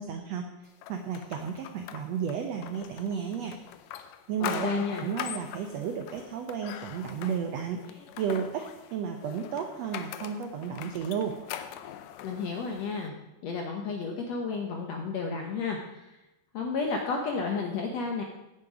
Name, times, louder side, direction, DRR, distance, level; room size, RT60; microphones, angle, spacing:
voice 1, 0.0-3.6 4.3-11.4, right 7 dB, 70° right, 5 dB, 1.7 m, -33 dB
sound 1, 0.8-13.1, left 10 dB, 85° left, 2.3 m, -42 dB
voice 2, 4.4-5.1 12.2-13.1 13.4-16.2 16.5-18.2, left 4 dB, 65° left, 1 dB, 1.9 m, -32 dB
16.0 x 6.9 x 5.0 m, 0.96 s
omnidirectional pair, 3.7 m